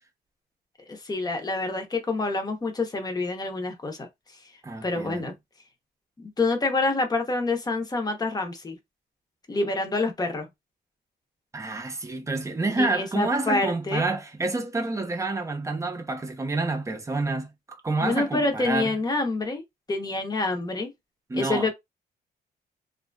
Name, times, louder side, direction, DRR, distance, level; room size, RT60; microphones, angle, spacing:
voice 1, 0.9-4.1 4.8-5.3 6.2-8.8 9.5-10.5 12.8-14.1 18.0-19.6 19.9-20.9 21.3-21.7, left 3 dB, 20° left, 0.8 m, -27 dB
voice 2, 4.6-5.3 11.5-19.0 21.3-21.7, right 3 dB, 15° right, 0.6 m, -28 dB
2.7 x 2.5 x 2.2 m
cardioid pair, 125°, 18 cm